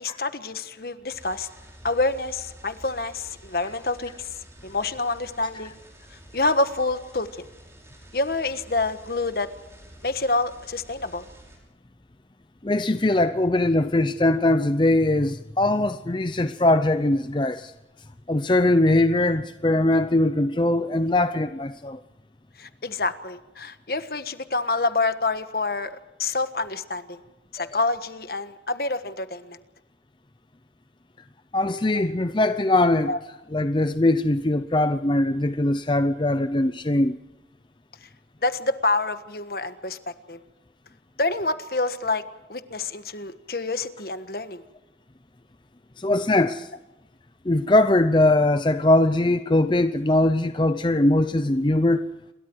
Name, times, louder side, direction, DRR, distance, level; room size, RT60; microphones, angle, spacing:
voice 1, 0.0-1.5 1.8-4.1 4.6-5.8 6.3-7.3 8.1-9.5 10.0-11.2 22.6-25.9 26.2-27.2 27.5-29.6 31.9-32.0 33.1-33.2 38.4-40.0 40.3-40.4 41.2-42.2 42.5-44.6, left 3 dB, 55° left, 1.5 m, -27 dB
sound 1, 1.1-11.6, right 1 dB, 15° right, 6.8 m, -49 dB
voice 2, 12.6-17.7 18.3-22.0 27.6-27.8 31.5-33.1 33.5-37.2 46.0-46.7 47.4-52.1, left 1 dB, 25° left, 0.6 m, -21 dB
28.0 x 22.0 x 4.7 m
head